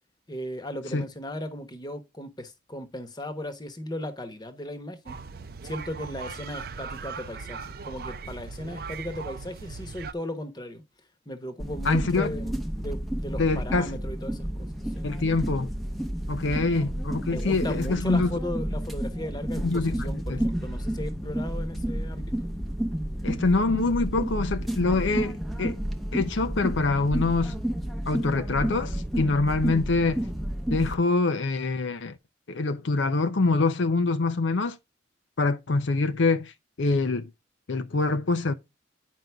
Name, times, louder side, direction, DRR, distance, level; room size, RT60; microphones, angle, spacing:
voice 1, 0.3-5.2 5.6-10.8 11.3-14.7 14.9-15.1 17.3-22.5, left 1 dB, 20° left, 1.1 m, -36 dB
sound 1, 5.1-10.1, right 5 dB, 50° right, 0.5 m, -39 dB
sound 2, 11.6-30.9, equal, ahead, 0.7 m, -31 dB
voice 2, 11.8-12.3 13.4-14.0 15.0-15.7 16.3-18.3 19.6-20.4 23.2-25.8 26.1-27.5 28.1-30.2 30.7-32.2 32.5-34.8 35.4-36.5 36.8-37.3 37.7-38.5, left 3 dB, 80° left, 0.6 m, -25 dB
9.3 x 5.3 x 3.4 m
head